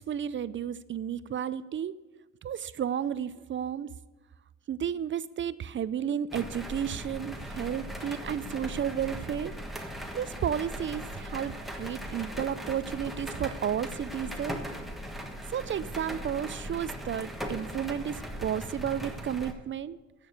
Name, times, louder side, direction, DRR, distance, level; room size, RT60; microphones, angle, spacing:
voice 1, 0.0-1.9 2.4-3.9 4.7-9.5 10.1-14.6 15.5-20.0, right 9 dB, 40° right, 17 dB, 0.4 m, -32 dB
sound 1, 6.3-19.5, equal, ahead, 1.4 m, -39 dB
9.5 x 6.9 x 8.0 m, 1.2 s
cardioid pair, 90°, 30 cm